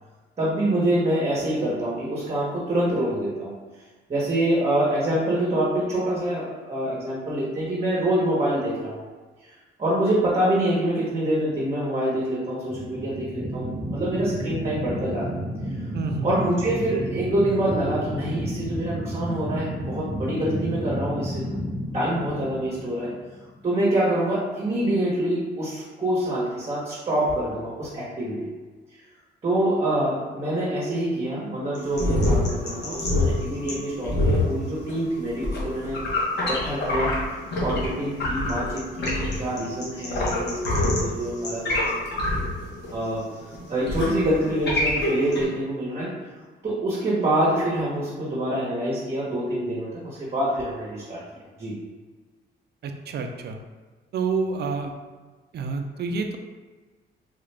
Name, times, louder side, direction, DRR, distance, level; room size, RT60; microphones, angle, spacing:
voice 1, 0.4-3.5 4.1-9.0 9.4-15.3 16.2-21.5 21.9-23.1 23.6-28.5 29.4-36.0 36.4-37.2 37.6-41.9 42.9-46.1 46.6-51.2 51.6-51.8, right 1 dB, 30° right, -7 dB, 1.1 m, -26 dB
sound 1, 12.7-23.6, equal, ahead, 0.5 m, -32 dB
voice 2, 15.9-16.3 52.8-53.6 54.1-54.9 55.5-56.4, right 4 dB, 55° right, 5 dB, 0.5 m, -28 dB
sound 2, 31.7-37.9 38.1-45.4, left 1 dB, 60° left, 1.2 m, -25 dB
3.7 x 2.4 x 3.3 m, 1.4 s
cardioid pair, 90°, 20 cm